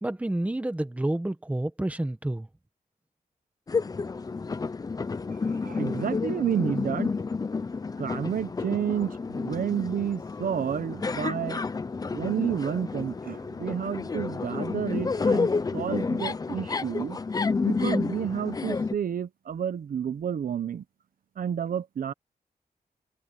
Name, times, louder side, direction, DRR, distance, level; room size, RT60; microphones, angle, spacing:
voice 1, 0.0-2.5, right 1 dB, 10° right, 1.3 m, -29 dB
sound 1, 3.7-18.9, left 4 dB, 25° left, 0.6 m, -30 dB
voice 2, 5.5-7.1 8.0-11.6 12.0-17.2 17.6-20.8 21.4-22.1, right 8 dB, 75° right, 0.9 m, -30 dB
wide cardioid pair, 175°, 15 cm